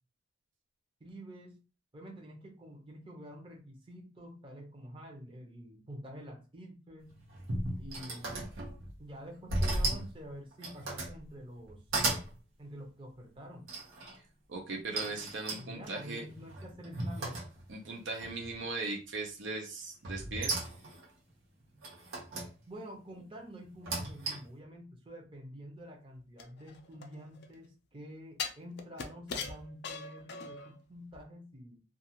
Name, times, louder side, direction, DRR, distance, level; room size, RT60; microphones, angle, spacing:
voice 1, 1.0-1.6 1.9-7.2 7.8-11.8 12.6-13.7 15.6-17.4 22.7-31.8, equal, 25° right, 0 dB, 0.7 m, -48 dB
sound 1, 7.1-9.0 9.5-10.1 10.5-11.2 11.6-12.3 13.7-14.2 15.0-17.9 18.2-18.7 20.0-21.1 21.8-22.5 23.7-24.6, right 2 dB, 85° right, 0.9 m, -36 dB
voice 2, 14.5-16.2 17.7-20.6, right 3 dB, 60° right, 0 dB, 0.5 m, -38 dB
sound 2, 26.4-27.5 28.4-30.7 31.1-31.2, left 5 dB, 55° left, 0.4 m, -40 dB
2.4 x 2.4 x 2.8 m, 0.32 s
head